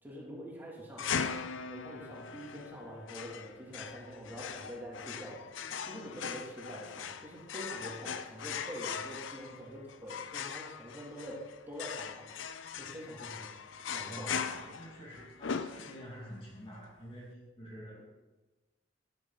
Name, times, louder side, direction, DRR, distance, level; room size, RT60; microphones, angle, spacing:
voice 1, 0.0-11.4 11.7-12.3 12.8-13.5 13.9-14.3, equal, 10° right, -5 dB, 3.0 m, -45 dB
sound 1, 1.0-16.3, left 6 dB, 80° left, 0.6 m, -40 dB
voice 2, 14.1-18.0, equal, 30° left, -3 dB, 2.3 m, -47 dB
11.5 x 11.0 x 4.1 m, 1.2 s
head